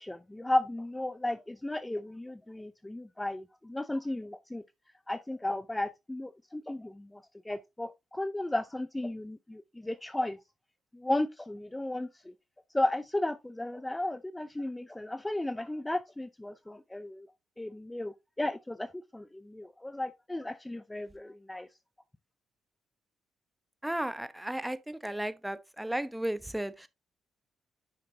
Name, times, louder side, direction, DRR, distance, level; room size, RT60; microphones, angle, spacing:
voice 1, 0.0-4.6 5.1-10.4 10.9-12.3 12.7-17.3 17.6-21.7, left 1 dB, 15° left, 0.6 m, -34 dB
voice 2, 23.8-26.9, right 1 dB, 5° right, 1.0 m, -34 dB
9.5 x 5.7 x 2.8 m
supercardioid pair, 60°, 0 cm